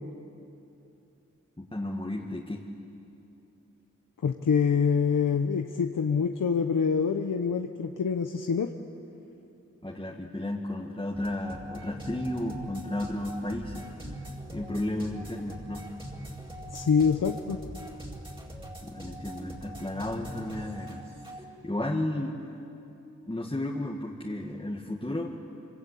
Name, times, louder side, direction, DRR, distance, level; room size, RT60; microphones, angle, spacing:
voice 1, 1.6-2.6 9.8-14.2 14.5-15.9 18.8-21.0 21.6-22.6 23.3-25.3, left 1 dB, 15° left, -2 dB, 2.1 m, -33 dB
voice 2, 4.2-8.7 16.7-17.6, left 6 dB, 90° left, 5 dB, 1.0 m, -25 dB
sound 1, 11.1-21.4, equal, 15° right, 4.4 m, -42 dB
26.5 x 25.5 x 8.5 m, 2.7 s
wide cardioid pair, 65°, 31 cm